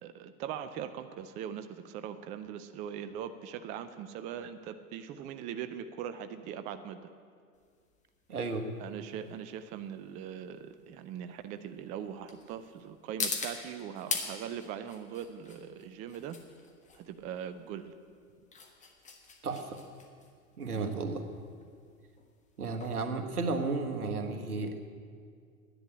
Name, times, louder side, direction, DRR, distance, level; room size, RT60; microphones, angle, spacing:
voice 1, 0.0-7.0 8.8-16.4 16.9-17.9 20.7-21.0, right 9 dB, 20° right, 10 dB, 0.4 m, -41 dB
sound 1, 7.6-24.2, left 4 dB, 15° left, 1.5 m, -42 dB
voice 2, 8.3-8.7 19.4-19.8 20.6-21.2 22.6-24.9, right 3 dB, 85° right, 5 dB, 1.6 m, -33 dB
10.5 x 10.0 x 8.8 m, 2.1 s
hypercardioid pair, 105°, 44 cm